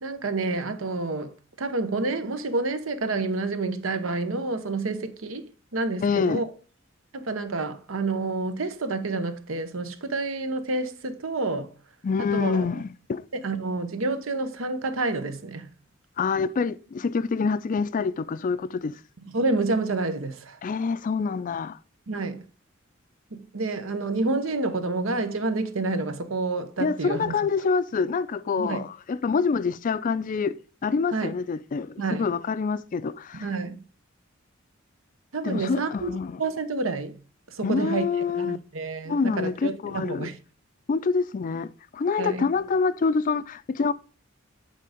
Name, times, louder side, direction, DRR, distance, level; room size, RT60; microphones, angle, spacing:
voice 1, 0.0-6.5 7.1-11.7 12.2-12.6 13.3-15.7 19.3-20.6 22.1-22.4 23.3-27.4 28.6-28.8 31.1-31.3 32.0-32.3 33.3-33.8 35.3-36.1 36.4-37.1 37.5-38.1 38.4-40.3 42.2-42.5, right 3 dB, 80° right, 0.9 m, -29 dB
voice 2, 6.0-6.4 12.0-13.3 16.2-19.0 20.6-21.8 26.8-33.5 35.4-36.4 37.6-38.6 39.1-40.3 40.9-43.9, left 5 dB, 40° left, 0.4 m, -26 dB
8.5 x 3.8 x 4.9 m
head